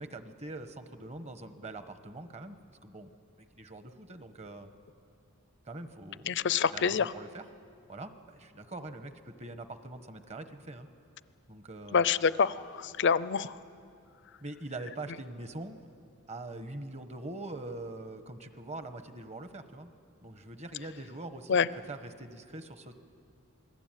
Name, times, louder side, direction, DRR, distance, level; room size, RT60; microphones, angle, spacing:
voice 1, 0.0-2.6 2.8-3.1 3.6-4.7 5.6-6.4 6.7-7.5 7.9-10.9 11.5-12.0 14.4-15.8 16.3-19.9 20.2-21.6 21.9-22.9, right 2 dB, 35° right, 9 dB, 1.3 m, -43 dB
voice 2, 6.3-7.1 11.9-13.5 21.5-21.7, left 6 dB, 60° left, 16 dB, 0.6 m, -26 dB
27.5 x 21.0 x 9.2 m, 2.4 s
head